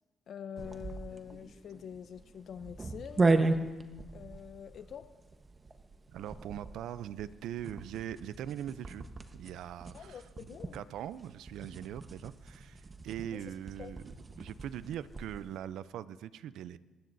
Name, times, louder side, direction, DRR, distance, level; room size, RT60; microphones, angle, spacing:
voice 1, 0.3-3.3 4.1-5.1 9.9-10.8 13.3-13.9, left 8 dB, 60° left, 10 dB, 0.7 m, -46 dB
sound 1, 0.6-15.5, right 3 dB, 30° right, 1.1 m, -36 dB
voice 2, 6.1-9.1 9.3-10.2 10.7-14.0 14.4-16.8, right 10 dB, 80° right, 15 dB, 0.5 m, -41 dB
26.0 x 20.0 x 2.7 m, 1.2 s
cardioid pair, 90°, 0 cm